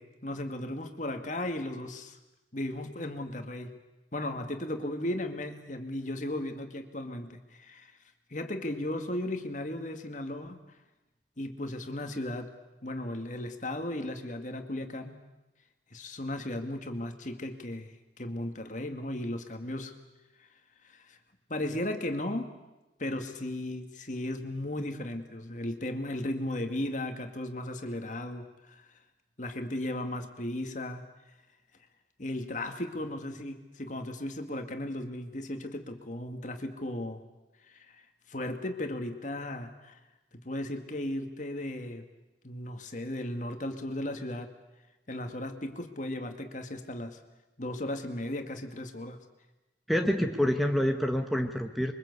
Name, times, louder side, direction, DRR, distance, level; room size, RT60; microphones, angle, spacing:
voice 1, 0.0-2.2 2.5-3.8 4.1-8.0 8.3-10.6 11.4-12.5 12.8-15.2 15.9-19.9 20.8-21.2 21.5-22.5 23.0-28.9 29.4-31.0 32.2-37.2 37.7-40.0 40.4-42.0 42.4-44.5 45.1-47.2 47.6-49.2, left 1 dB, 45° left, 6 dB, 2.2 m, -36 dB
voice 2, 49.9-51.9, equal, ahead, 2 dB, 1.4 m, -27 dB
27.5 x 23.5 x 8.3 m, 1.0 s
head